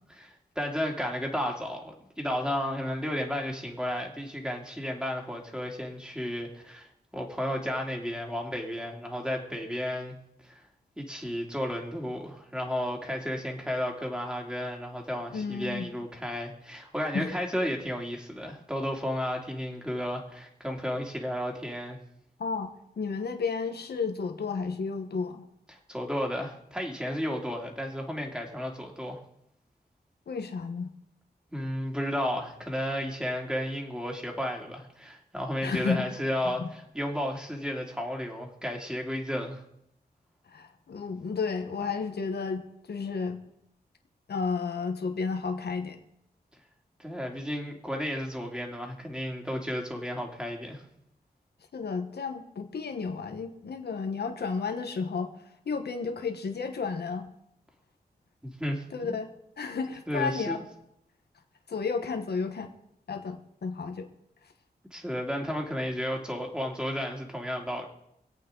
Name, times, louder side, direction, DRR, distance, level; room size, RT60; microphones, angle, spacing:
voice 1, 0.2-10.2 10.4-10.7 11.0-22.0 25.7-29.2 31.5-39.6 47.0-50.8 58.4-59.2 60.1-60.6 64.9-67.9, equal, 5° right, 1 dB, 2.6 m, -33 dB
voice 2, 15.3-15.9 17.1-17.3 22.4-25.4 30.3-30.9 35.6-36.0 36.6-36.7 40.5-43.4 44.3-46.0 51.7-55.3 55.7-57.3 58.9-59.3 59.6-60.6 61.7-62.7 63.1-64.1, left 5 dB, 80° left, 6 dB, 1.2 m, -32 dB
23.5 x 8.5 x 3.9 m, 0.77 s
wide cardioid pair, 90°, 17 cm